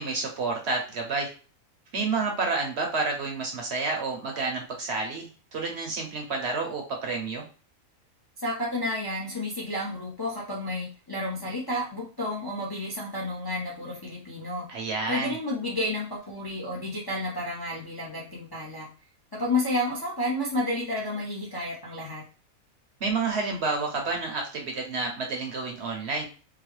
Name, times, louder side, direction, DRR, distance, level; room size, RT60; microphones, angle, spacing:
voice 1, 0.0-1.3 1.9-7.4 14.7-15.4 23.0-26.3, right 3 dB, 55° right, 2 dB, 0.9 m, -29 dB
voice 2, 8.4-14.7 15.1-18.9 19.3-22.2, left 1 dB, 25° left, -4 dB, 0.5 m, -31 dB
3.7 x 2.1 x 3.1 m, 0.37 s
omnidirectional pair, 1.4 m